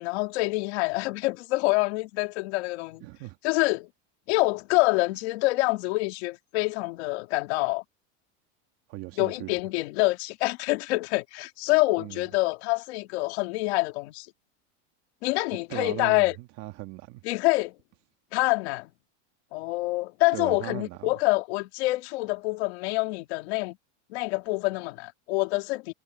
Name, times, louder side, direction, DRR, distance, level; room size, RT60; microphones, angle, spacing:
voice 1, 0.0-3.0 3.4-3.9 4.3-7.8 9.2-14.3 15.2-16.4 17.2-17.8 18.3-18.9 19.5-23.8 24.1-25.9, left 23 dB, 65° left, 2.8 m, -26 dB
voice 2, 3.0-3.4 8.9-9.5 12.0-12.2 15.7-17.2 20.3-21.1, right 19 dB, 45° right, 2.1 m, -38 dB
supercardioid pair, 165°, 36 cm